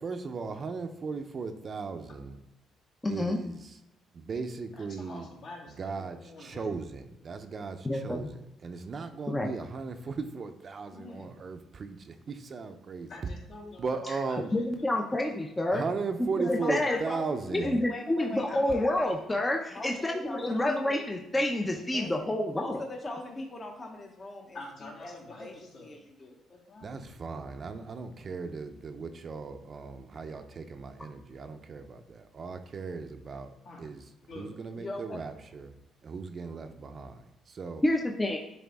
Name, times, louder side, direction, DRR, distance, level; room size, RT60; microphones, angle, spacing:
voice 1, 0.0-2.4 3.1-3.8 4.2-5.3 5.7-13.1 13.8-14.5 15.7-17.8 26.8-33.5 33.8-34.0 34.3-35.7 36.0-37.8, right 4 dB, 40° right, 7 dB, 0.7 m, -37 dB
voice 2, 3.0-3.4 7.8-8.3 9.3-9.5 14.5-15.8 16.4-17.0 17.5-22.8 37.8-38.4, left 1 dB, 15° left, 1 dB, 0.7 m, -28 dB
voice 3, 4.8-6.8 10.9-11.3 13.1-14.0 14.3-15.5 18.3-18.7 20.4-20.8 24.5-25.9 26.5-27.1 33.6-33.9 34.3-34.5, left 2 dB, 65° left, -3 dB, 2.6 m, -47 dB
voice 4, 16.4-17.2 17.6-19.2 19.7-21.1 21.9-26.4 34.8-35.2, left 2 dB, 30° left, 2 dB, 1.0 m, -41 dB
10.5 x 3.5 x 3.5 m, 0.90 s
cardioid pair, 105°, 0 cm